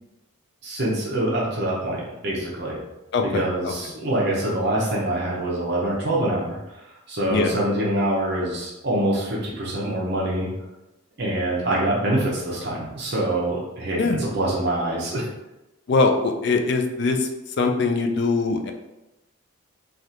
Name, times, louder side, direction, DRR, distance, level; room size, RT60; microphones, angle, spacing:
voice 1, 0.6-2.8 3.3-10.5 11.2-15.3, right 1 dB, 50° right, -4 dB, 0.7 m, -25 dB
voice 2, 3.1-3.7 7.3-7.5 14.0-14.2 15.9-18.7, left 3 dB, 50° left, 5 dB, 0.3 m, -22 dB
3.3 x 2.4 x 2.7 m, 0.95 s
head